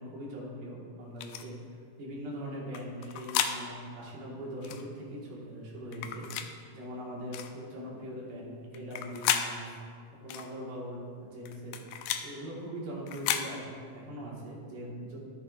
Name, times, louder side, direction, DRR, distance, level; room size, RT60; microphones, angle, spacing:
voice 1, 0.0-9.7 10.2-11.8 12.2-15.2, equal, 80° right, -4 dB, 3.4 m, -41 dB
sound 1, 1.2-1.4 2.7-3.6 4.6-4.8 5.9-6.5 7.3-7.5 8.7-9.5 10.3-10.5 11.5-12.3 13.1-13.5, left 10 dB, 80° left, 1.9 m, -32 dB
13.5 x 8.6 x 2.5 m, 2.2 s
omnidirectional pair, 3.9 m